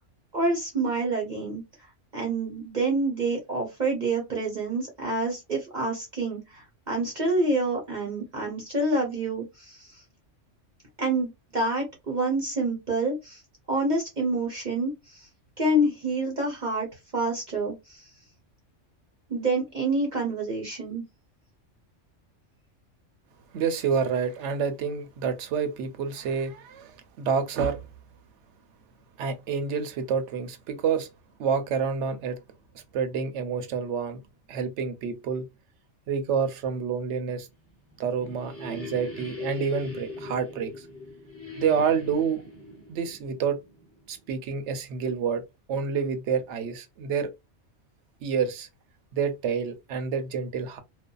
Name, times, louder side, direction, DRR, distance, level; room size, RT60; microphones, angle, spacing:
voice 1, 0.3-1.6 2.1-6.4 6.9-9.7 11.0-13.4 13.7-14.9 15.6-16.9 17.1-17.7 19.3-21.0, right 2 dB, 45° right, 0.8 m, -27 dB
voice 2, 23.5-27.8 29.2-31.1 31.4-32.4 32.9-34.2 34.5-35.5 36.1-37.5 38.0-40.7 41.6-42.4 42.9-43.6 44.1-45.4 45.7-47.3 48.2-48.7 49.1-50.8, right 6 dB, 70° right, 0.9 m, -28 dB
sound 1, 37.6-44.3, left 2 dB, 15° left, 0.6 m, -41 dB
2.5 x 2.3 x 2.2 m
omnidirectional pair, 1.3 m